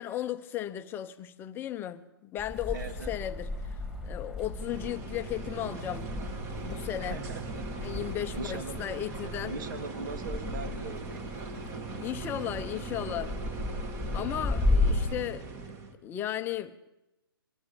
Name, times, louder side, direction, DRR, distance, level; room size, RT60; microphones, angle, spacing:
voice 1, 0.0-2.8 3.1-6.1 6.6-7.2 7.8-9.6 12.0-13.3 14.1-15.4 16.0-16.7, left 12 dB, 15° left, 0.9 m, -35 dB
sound 1, 2.4-15.1, left 2 dB, 5° right, 3.3 m, -34 dB
voice 2, 2.7-3.2 7.0-7.7 8.3-8.8 9.5-11.2, right 4 dB, 55° right, 3.0 m, -40 dB
sound 2, 4.6-15.9, right 4 dB, 20° right, 2.2 m, -40 dB
24.0 x 23.0 x 7.1 m
hypercardioid pair, 140°, 12 cm